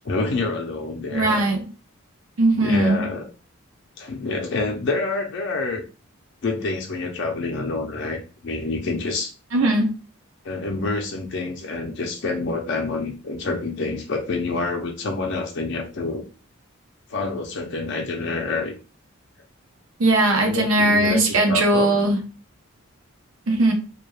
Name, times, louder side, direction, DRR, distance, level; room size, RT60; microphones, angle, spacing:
voice 1, 0.0-1.4 2.6-3.3 4.0-5.8 6.4-9.3 10.4-16.2 17.1-18.7 20.4-21.2 21.5-22.0, left 3 dB, 55° left, 1 dB, 0.4 m, -27 dB
voice 2, 1.1-1.6 2.4-3.0 9.5-9.9 20.0-22.2 23.5-23.7, right 2 dB, 70° right, 2 dB, 0.6 m, -19 dB
2.2 x 2.2 x 3.1 m, 0.34 s
head